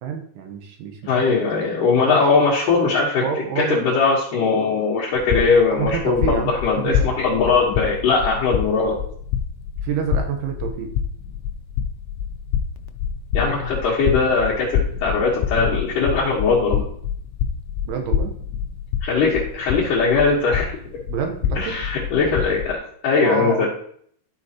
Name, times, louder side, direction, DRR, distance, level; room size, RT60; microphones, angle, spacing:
voice 1, 0.0-1.4 2.0-2.2 3.2-3.8 5.7-7.4 9.8-10.9 17.8-18.3 21.1-21.8 23.2-23.7, right 7 dB, 75° right, 4 dB, 3.2 m, -28 dB
voice 2, 1.0-3.2 3.6-9.0 13.3-16.8 19.0-20.8 21.6-22.8 23.0-23.7, left 4 dB, 70° left, -6 dB, 2.1 m, -20 dB
sound 1, 5.1-22.7, left 8 dB, 85° left, 2.5 m, -27 dB
13.0 x 5.0 x 2.9 m, 0.62 s
omnidirectional pair, 5.7 m